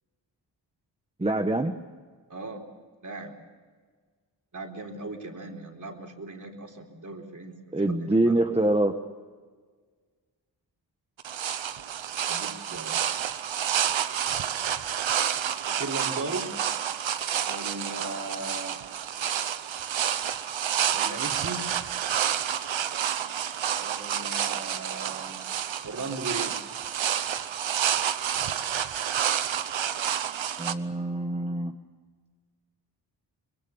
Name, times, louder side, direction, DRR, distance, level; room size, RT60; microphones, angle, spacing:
voice 1, 1.2-1.8 7.7-9.0 30.6-31.7, right 2 dB, 15° right, 5 dB, 1.1 m, -25 dB
voice 2, 2.3-2.6 3.0-3.3 4.5-8.6 12.3-13.0 15.7-16.5 17.5-18.8 20.9-21.6 23.8-25.4 25.8-26.6, right 3 dB, 40° right, 1 dB, 3.9 m, -37 dB
sound 1, 11.2-30.7, right 9 dB, 90° right, 1.0 m, -29 dB
25.0 x 22.0 x 7.2 m, 1.6 s
wide cardioid pair, 90°, 45 cm